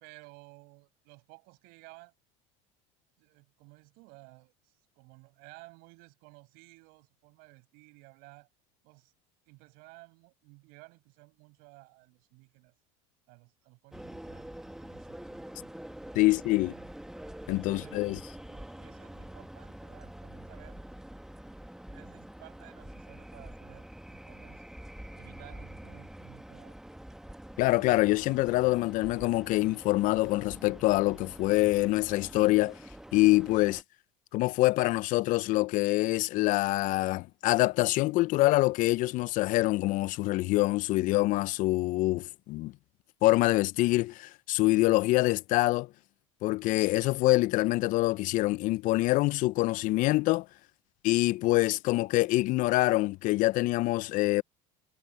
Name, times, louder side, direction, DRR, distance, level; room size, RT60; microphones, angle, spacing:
voice 1, 0.0-2.1 3.2-8.5 8.8-9.2 9.5-12.7 13.3-15.7 16.2-16.9 17.7-20.8 21.9-24.6 25.1-26.8, right 28 dB, 70° right, 7.2 m, -55 dB
sound 1, 13.9-33.8, right 1 dB, 5° right, 1.3 m, -46 dB
voice 2, 16.2-16.7 17.5-18.2 27.6-32.8 33.1-33.8 34.3-42.7 43.2-45.9 46.4-50.5 51.0-54.4, left 19 dB, 55° left, 0.4 m, -25 dB
supercardioid pair, 95°, 16 cm